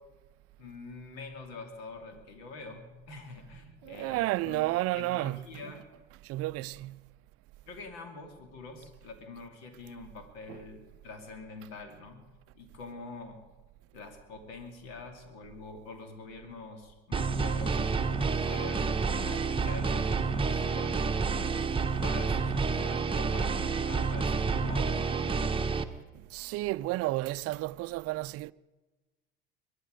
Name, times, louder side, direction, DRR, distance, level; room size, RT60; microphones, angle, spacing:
voice 1, 0.6-4.2 4.4-5.8 7.7-12.2 12.5-13.4 13.9-17.9 18.4-18.9 19.2-21.0 22.0-25.1, left 3 dB, 70° left, 2.7 m, -45 dB
voice 2, 3.8-5.7 6.2-7.0 10.5-10.6 26.1-28.5, right 18 dB, 50° right, 0.5 m, -32 dB
sound 1, 17.1-25.8, right 4 dB, 15° right, 1.0 m, -29 dB
23.0 x 10.5 x 5.1 m
hypercardioid pair, 65°, 32 cm